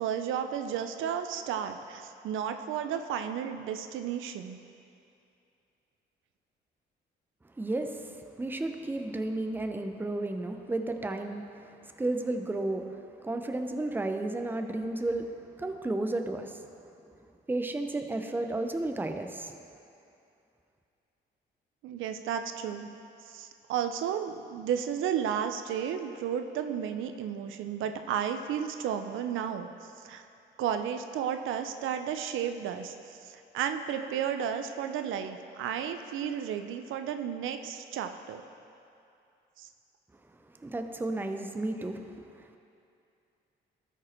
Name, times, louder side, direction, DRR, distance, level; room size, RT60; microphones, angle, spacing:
voice 1, 0.0-4.6 21.8-22.9 23.3-29.7 30.0-30.3 30.6-32.9 33.2-38.4 39.6-39.7, right 8 dB, 80° right, 8 dB, 0.5 m, -33 dB
voice 2, 7.6-12.9 13.2-15.3 15.6-16.7 17.5-19.5 40.6-42.6, right 2 dB, 10° right, 6 dB, 0.6 m, -33 dB
13.0 x 5.1 x 4.4 m, 2.6 s
cardioid pair, 90°, 20 cm